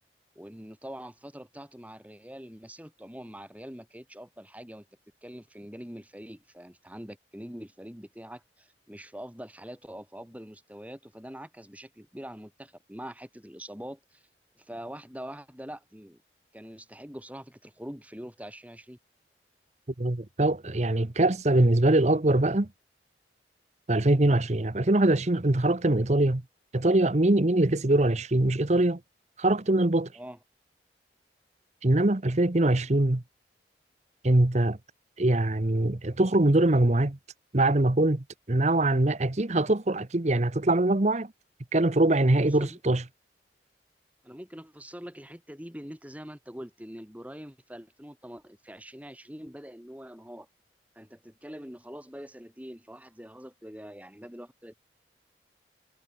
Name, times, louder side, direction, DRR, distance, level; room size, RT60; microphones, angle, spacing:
voice 1, 0.4-4.9 5.2-14.2 14.6-16.2 16.5-19.0 30.1-30.4 42.4-42.8 44.2-50.5 51.0-54.8, equal, 10° right, 3.7 m, -44 dB
voice 2, 20.0-22.7 23.9-26.4 26.7-29.0 29.4-30.1 31.8-33.2 34.2-34.8 35.2-37.2 37.5-41.3 41.7-43.0, right 1 dB, 40° right, 1.0 m, -23 dB
head